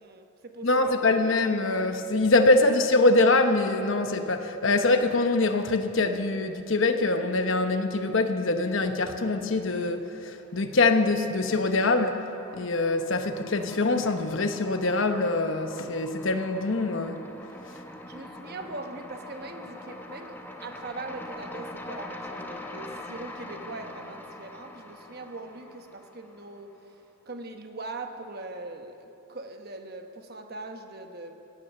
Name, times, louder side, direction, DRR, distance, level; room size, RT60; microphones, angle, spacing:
voice 1, 0.0-1.3 18.1-26.8 27.3-31.3, right 2 dB, 50° right, 5 dB, 1.0 m, -41 dB
voice 2, 0.6-12.2 12.5-17.2, left 2 dB, 65° left, 7 dB, 1.0 m, -24 dB
sound 1, 10.5-11.2 11.5-26.7, left 1 dB, 10° left, 0.9 m, -43 dB
17.5 x 9.7 x 7.1 m, 2.9 s
head